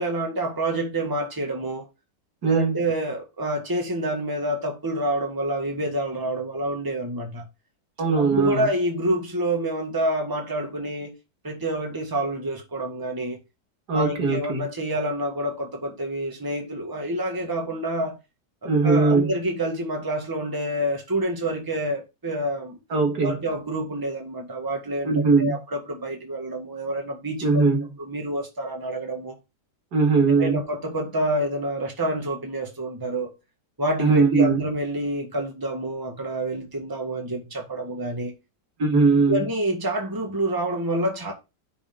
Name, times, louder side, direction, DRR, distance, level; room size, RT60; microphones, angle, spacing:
voice 1, 0.0-1.9 2.4-7.5 8.2-11.1 11.4-13.4 13.9-18.2 18.8-22.8 23.2-27.6 28.0-29.4 30.4-33.3 33.8-38.4 39.3-41.3, right 1 dB, 15° right, 1.8 m, -28 dB
voice 2, 2.4-2.8 8.0-8.7 13.9-14.7 18.6-19.3 22.9-23.4 25.0-25.6 27.4-27.9 29.9-30.6 34.0-34.6 38.8-39.5, right 4 dB, 70° right, 2.4 m, -20 dB
9.7 x 5.1 x 3.6 m
omnidirectional pair, 1.8 m